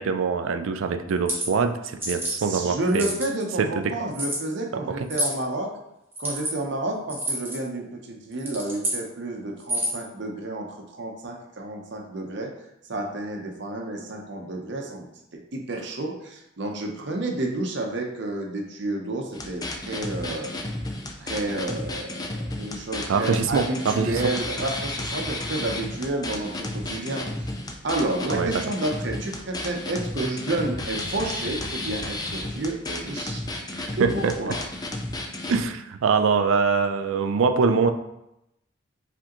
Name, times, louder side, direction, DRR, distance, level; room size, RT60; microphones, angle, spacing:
voice 1, 0.0-3.1 3.6-3.9 23.1-24.2 28.3-28.6 33.8-34.3 35.5-37.9, right 5 dB, 85° right, 8 dB, 0.4 m, -23 dB
sound 1, 1.1-1.5 2.0-2.4 2.9-3.4 4.1-4.4 5.1-5.4 6.1-6.5 7.1-7.6 8.3-9.0 9.6-10.1, right 1 dB, 10° right, 1.0 m, -28 dB
voice 2, 2.4-5.7 6.2-12.5 12.9-15.1 15.5-20.5 21.2-27.3 27.8-33.4 34.0-34.5, right 2 dB, 60° right, 1 dB, 0.7 m, -30 dB
sound 2, 19.3-35.6, left 2 dB, 20° left, 0.4 m, -32 dB
4.9 x 3.4 x 3.0 m, 0.85 s
head